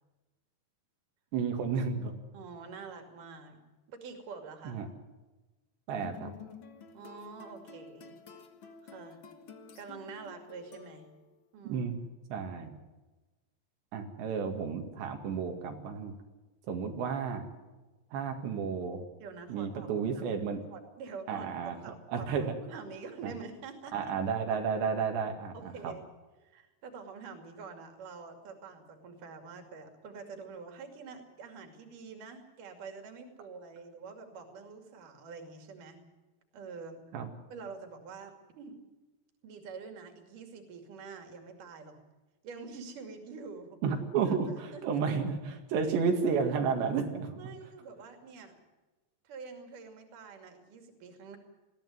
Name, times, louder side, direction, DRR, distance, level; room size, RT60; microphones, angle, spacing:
voice 1, 1.3-2.2 4.7-4.9 5.9-6.3 11.6-12.0 12.3-12.7 13.9-16.1 16.7-17.5 18.1-19.0 19.5-20.6 21.3-21.8 22.1-22.6 23.2-23.3 23.9-25.9 37.1-37.3 43.8-47.3, right 6 dB, 85° right, 3 dB, 4.3 m, -32 dB
voice 2, 2.3-3.6 3.9-4.8 6.9-8.1 8.8-9.2 9.8-11.1 11.5-11.9 19.2-19.9 20.7-24.1 25.5-26.0 26.4-36.0 36.5-37.0 37.5-38.8 39.4-42.0 42.4-43.8 44.3-45.0 47.4-48.5 49.2-51.4, right 5 dB, 55° right, 5 dB, 3.9 m, -46 dB
sound 1, 6.0-11.4, left 5 dB, 70° left, 1.1 m, -51 dB
21.5 x 15.0 x 9.4 m, 1.1 s
omnidirectional pair, 4.9 m